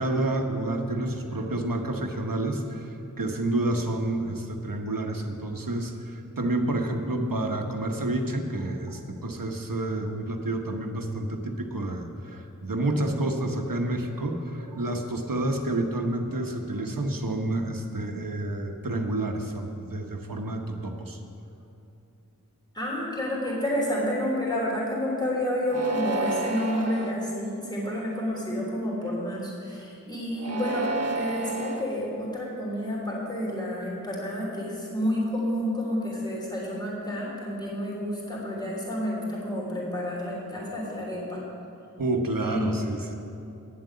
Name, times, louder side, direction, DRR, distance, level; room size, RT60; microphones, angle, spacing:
voice 1, 0.0-21.2 29.0-29.1 42.0-43.1, right 1 dB, 80° right, 4 dB, 1.1 m, -29 dB
voice 2, 22.7-41.4 42.4-42.8, equal, 15° left, -5 dB, 3.3 m, -30 dB
sound 1, 25.7-27.1 27.8-28.4 30.3-31.8, right 3 dB, 50° right, 1.1 m, -31 dB
9.6 x 7.7 x 8.6 m, 2.9 s
wide cardioid pair, 50°, 33 cm